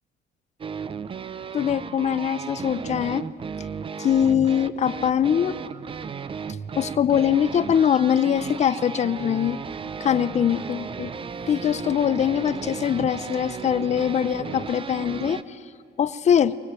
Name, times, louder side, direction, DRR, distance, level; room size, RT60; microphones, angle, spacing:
sound 1, 0.6-15.4, right 6 dB, 30° right, 0.8 m, -35 dB
voice 1, 1.5-3.2 4.0-5.5 6.7-9.6 10.0-11.1 11.5-15.6 16.0-16.5, left 9 dB, 40° left, 15 dB, 0.9 m, -22 dB
24.0 x 19.5 x 9.2 m, 2.4 s
cardioid pair, 110°, 17 cm